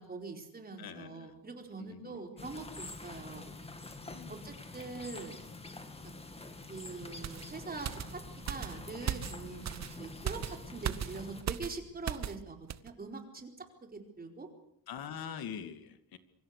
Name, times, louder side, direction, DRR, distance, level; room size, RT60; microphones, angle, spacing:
voice 1, 0.0-3.5 4.3-5.4 6.7-8.2 8.5-14.5, right 3 dB, 25° right, 3 dB, 4.4 m, -44 dB
voice 2, 0.8-1.3 1.8-2.5 4.0-4.3 14.9-16.2, left 8 dB, 80° left, 10 dB, 2.4 m, -44 dB
sound 1, 2.4-11.4, left 3 dB, 15° left, 2.3 m, -46 dB
sound 2, 7.2-12.4 12.7-12.9, right 9 dB, 50° right, 1.0 m, -38 dB
27.0 x 24.5 x 6.7 m, 0.69 s
wide cardioid pair, 160°, 36 cm